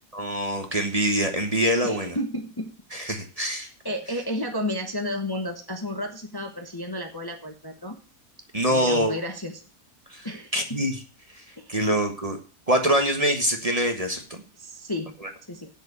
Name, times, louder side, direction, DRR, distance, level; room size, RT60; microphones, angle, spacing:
voice 1, 0.1-2.2 2.9-3.7 8.5-9.2 10.1-10.3 10.5-10.9 11.3-11.4 11.7-12.4 12.7-14.4 15.2-15.3, right 1 dB, 25° right, 5 dB, 1.4 m, -24 dB
voice 2, 1.8-2.7 3.8-8.0 8.7-9.6 10.2-10.8 11.6-11.9 14.6-15.1 15.5-15.7, left 1 dB, 15° left, 4 dB, 1.0 m, -32 dB
8.1 x 7.0 x 8.0 m, 0.36 s
omnidirectional pair, 1.7 m